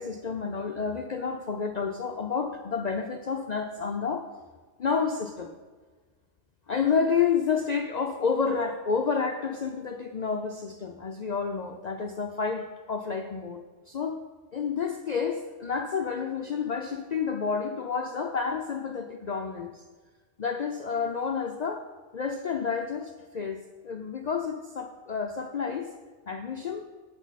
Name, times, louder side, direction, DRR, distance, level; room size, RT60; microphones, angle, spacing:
voice 1, 0.0-4.3 4.8-5.6 6.7-14.2 14.5-19.8 20.4-21.8 22.1-25.9 26.3-26.9, left 5 dB, 65° left, 4 dB, 0.4 m, -30 dB
9.0 x 8.2 x 4.1 m, 1.4 s
omnidirectional pair, 1.3 m